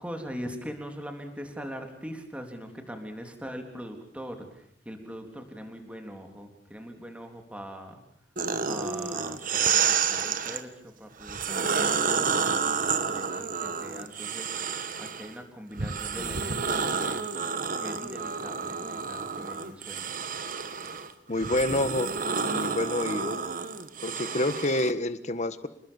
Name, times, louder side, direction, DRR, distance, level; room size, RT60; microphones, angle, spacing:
voice 1, 0.0-8.0 8.6-9.4 9.7-12.6 13.0-14.5 15.0-17.3 17.8-20.2, equal, 5° right, 4 dB, 3.6 m, -41 dB
sound 1, 8.4-10.6 11.2-15.3 15.8-24.9, right 6 dB, 50° right, 1.5 m, -30 dB
voice 2, 21.3-22.1 22.4-23.4 24.0-25.7, left 1 dB, 40° left, 12 dB, 1.4 m, -28 dB
28.0 x 20.5 x 7.2 m, 0.71 s
head